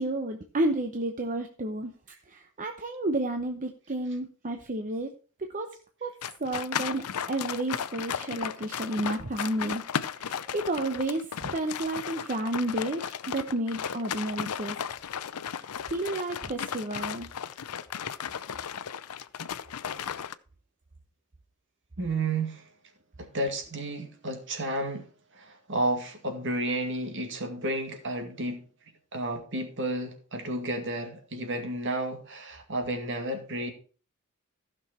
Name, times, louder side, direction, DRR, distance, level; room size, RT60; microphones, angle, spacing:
voice 1, 0.0-1.9 2.3-5.1 5.4-5.7 6.0-6.1 6.4-14.8 15.5-17.3, right 1 dB, 35° right, 0.8 m, -31 dB
sound 1, 6.2-20.3, left 8 dB, 85° left, 0.6 m, -35 dB
voice 2, 22.0-22.7 23.2-25.0 25.3-28.6 29.1-33.7, right 1 dB, 55° right, 2.2 m, -32 dB
15.0 x 6.2 x 4.4 m
head